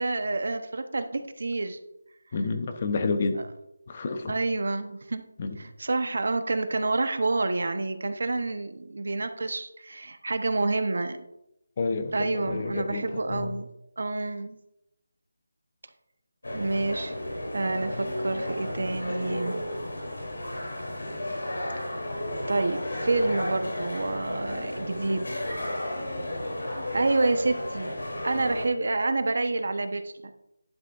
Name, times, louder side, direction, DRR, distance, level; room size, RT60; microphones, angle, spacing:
voice 1, 0.0-1.8 4.3-5.2 5.6-11.2 12.1-13.7 14.0-14.6 16.5-17.1 17.5-19.7 22.5-25.4 26.9-27.9 28.2-30.1, right 2 dB, 60° right, 8 dB, 0.9 m, -28 dB
voice 2, 2.3-3.4 3.9-4.3 5.4-5.6 11.8-13.5, left 3 dB, 30° left, 7 dB, 0.9 m, -29 dB
sound 1, 16.4-28.7, left 1 dB, 85° left, 3.2 m, -33 dB
11.5 x 8.6 x 2.5 m, 0.86 s
figure-of-eight pair, 170°, 0 cm